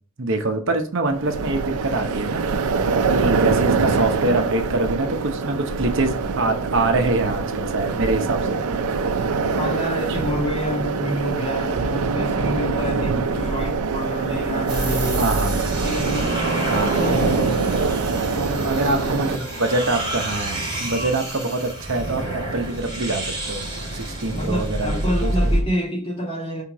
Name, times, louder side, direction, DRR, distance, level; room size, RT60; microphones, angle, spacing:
voice 1, 0.2-8.8 15.2-15.6 16.7-17.1 18.6-23.6 23.9-25.3, right 2 dB, 55° right, 0.8 m, -25 dB
sound 1, 1.1-19.4, right 4 dB, 85° right, 0.5 m, -24 dB
sound 2, 3.1-11.8, left 2 dB, 60° left, 2.1 m, -42 dB
voice 2, 9.6-15.3 15.6-17.7 18.3-19.5 24.3-26.6, equal, 25° left, 2.0 m, -28 dB
sound 3, 14.7-25.6, right 1 dB, 25° right, 2.6 m, -27 dB
5.7 x 3.7 x 4.6 m
head